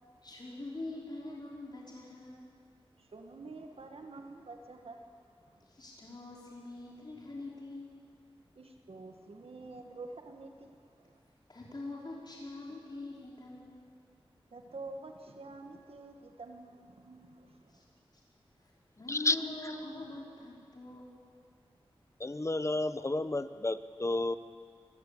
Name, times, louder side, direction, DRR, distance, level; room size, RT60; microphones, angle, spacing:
voice 1, 0.2-2.5 5.6-7.9 11.5-13.9 17.6-17.8 18.6-21.2, left 2 dB, 45° left, -4 dB, 5.1 m, -44 dB
voice 2, 3.0-5.6 8.6-11.2 14.5-17.8, right 3 dB, 80° right, 4 dB, 1.8 m, -48 dB
voice 3, 22.2-24.4, left 2 dB, 30° left, 12 dB, 0.9 m, -31 dB
24.0 x 17.0 x 8.6 m, 2.1 s
wide cardioid pair, 70°, 10 cm